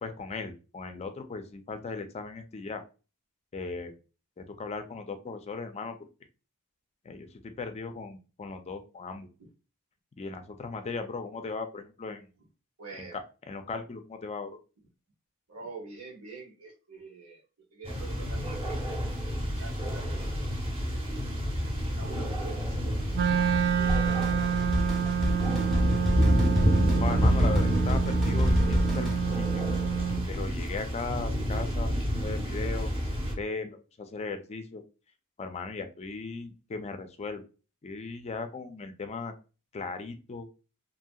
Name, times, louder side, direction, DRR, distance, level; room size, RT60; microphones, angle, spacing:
voice 1, 0.0-2.8 3.5-3.9 4.4-6.0 7.0-9.3 10.2-12.3 13.0-13.2 13.5-14.5 27.0-29.6 30.3-32.9 33.4-34.8 35.4-37.4 37.8-39.3 39.7-40.5, left 4 dB, 30° left, 8 dB, 0.4 m, -37 dB
voice 2, 12.8-13.2 15.5-17.4 17.7-18.8 19.2-20.4 20.7-21.0 21.8-23.0 23.3-24.5, right 4 dB, 85° right, -1 dB, 1.2 m, -46 dB
sound 1, 17.8-33.3, equal, 25° right, 0.9 m, -29 dB
Wind instrument woodwind instrument, 23.1-30.3, right 8 dB, 50° right, 0.3 m, -29 dB
Drum kit, 23.9-29.2, equal, ahead, 0.7 m, -30 dB
2.7 x 2.7 x 2.3 m, 0.33 s
head